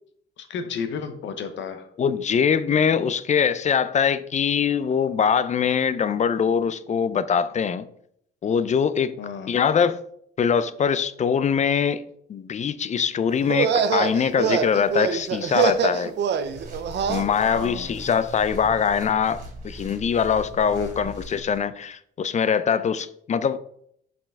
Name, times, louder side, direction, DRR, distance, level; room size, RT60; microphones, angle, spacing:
voice 1, 0.4-1.9 9.2-9.6 17.4-17.9 20.7-21.1, left 6 dB, 70° left, 0.9 m, -33 dB
voice 2, 2.0-7.9 8.4-9.2 9.5-10.0 10.4-12.0 12.3-16.1 17.1-23.6, left 7 dB, 35° left, 0.4 m, -23 dB
sound 1, 13.4-17.3, right 7 dB, 60° right, 0.6 m, -24 dB
sound 2, 16.4-21.6, right 1 dB, 40° right, 2.6 m, -40 dB
5.4 x 5.2 x 3.6 m
cardioid pair, 90°, 20 cm